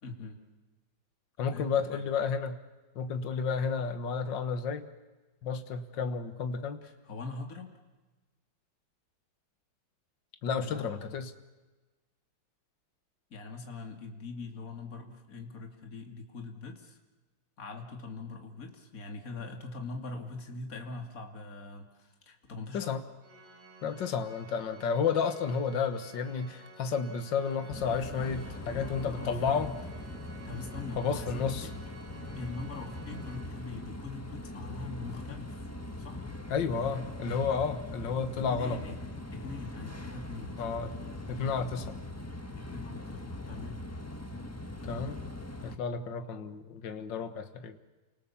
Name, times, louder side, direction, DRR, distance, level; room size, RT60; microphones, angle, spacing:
voice 1, 0.0-0.4 1.5-2.1 6.8-7.8 10.6-11.0 13.3-17.0 17.6-22.9 28.1-29.8 30.4-31.7 32.3-35.6 36.0-36.3 38.4-40.8 42.6-43.8, left 3 dB, 45° left, 3 dB, 3.0 m, -42 dB
voice 2, 1.4-2.6 3.0-4.9 5.4-6.8 10.4-11.3 22.7-23.0 23.8-29.7 31.0-31.7 36.5-38.8 40.6-40.9 41.3-42.0 44.8-45.2 45.6-47.8, left 6 dB, 70° left, 8 dB, 2.1 m, -31 dB
Organ, 23.2-34.0, right 2 dB, 85° right, 4.9 m, -53 dB
sound 1, 27.7-45.8, left 1 dB, 10° left, 1.3 m, -41 dB
29.5 x 25.5 x 7.2 m, 1.2 s
omnidirectional pair, 2.1 m